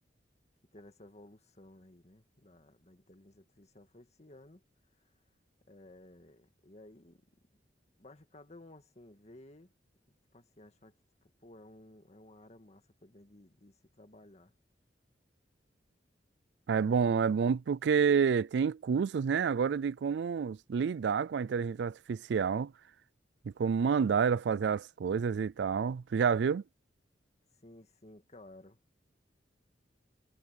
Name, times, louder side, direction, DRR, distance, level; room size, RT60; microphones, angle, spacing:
voice 1, 0.7-4.6 5.0-5.1 5.7-7.3 8.0-9.7 10.1-14.5 27.6-28.8, left 1 dB, 40° left, 2.0 m, -56 dB
voice 2, 16.7-22.7 23.6-26.6, right 6 dB, 70° right, 0.3 m, -29 dB
head